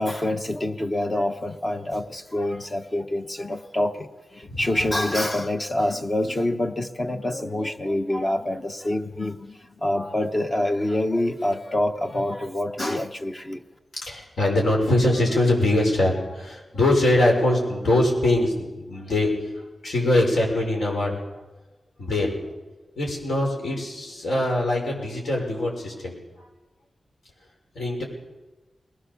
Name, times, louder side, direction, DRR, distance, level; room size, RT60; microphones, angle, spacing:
voice 1, 0.0-13.6, left 1 dB, 30° left, 6 dB, 1.0 m, -26 dB
voice 2, 4.5-4.9 9.9-10.1 14.0-19.3 19.6-21.4 22.0-22.4 23.0-26.2 27.8-28.0, left 1 dB, 75° left, 0 dB, 5.9 m, -23 dB
20.5 x 20.0 x 7.1 m, 1.2 s
wide cardioid pair, 105°, 0 cm